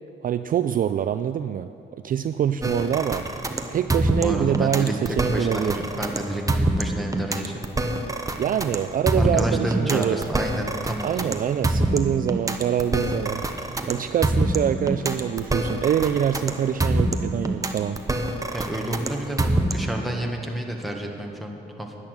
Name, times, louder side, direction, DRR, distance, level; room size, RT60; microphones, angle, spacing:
voice 1, 0.2-1.7 2.0-3.2 3.7-5.8 8.4-10.2 11.0-13.4 13.9-18.0, right 9 dB, 45° right, 10 dB, 0.4 m, -25 dB
sound 1, 2.6-20.0, right 1 dB, 15° right, 1.0 m, -25 dB
voice 2, 3.9-7.7 8.3-8.4 9.2-11.3 18.5-22.0, right 1 dB, ahead, 0 dB, 1.6 m, -30 dB
10.5 x 10.5 x 6.6 m, 2.8 s
cardioid pair, 90°, 20 cm